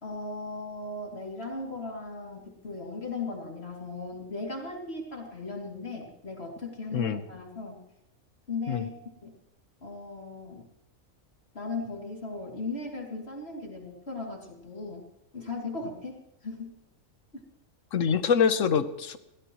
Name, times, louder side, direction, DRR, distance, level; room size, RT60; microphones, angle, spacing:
voice 1, 0.0-7.8 8.5-8.9 9.2-9.3 9.8-10.7 11.5-15.0 15.3-16.7 17.3-17.4, left 3 dB, 50° left, -1 dB, 3.0 m, -37 dB
voice 2, 17.9-19.2, left 6 dB, 75° left, 11 dB, 1.3 m, -25 dB
22.5 x 16.5 x 3.1 m, 0.88 s
omnidirectional pair, 1.4 m